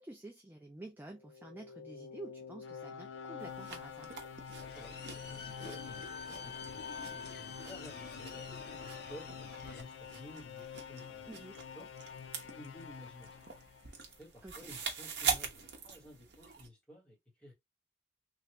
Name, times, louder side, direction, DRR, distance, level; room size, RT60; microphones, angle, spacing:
voice 1, 0.0-4.2 11.3-11.5 14.4-14.5, right 1 dB, 10° right, 0.4 m, -49 dB
sound 1, 1.1-14.2, left 6 dB, 85° left, 0.4 m, -47 dB
sound 2, 3.4-16.7, right 5 dB, 60° right, 0.8 m, -44 dB
sound 3, 4.6-9.8, left 4 dB, 55° left, 0.7 m, -48 dB
voice 2, 4.7-11.9 12.2-13.4 14.2-17.5, left 1 dB, 5° left, 1.4 m, -54 dB
3.2 x 2.4 x 2.9 m
head